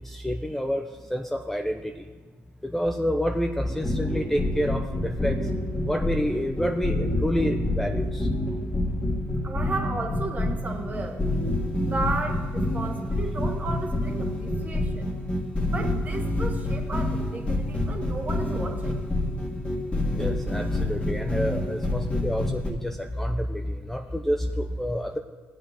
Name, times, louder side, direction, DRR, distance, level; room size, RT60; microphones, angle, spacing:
voice 1, 0.0-2.1 2.6-5.4 5.9-8.3 20.1-25.2, equal, 5° left, 4 dB, 0.6 m, -28 dB
sound 1, 3.6-22.7, left 1 dB, 25° left, 1.8 m, -28 dB
voice 2, 9.4-11.3 11.8-15.0 15.6-19.0, right 3 dB, 35° right, 2 dB, 1.6 m, -34 dB
16.0 x 7.9 x 2.9 m, 1.4 s
cardioid pair, 80°, 5 cm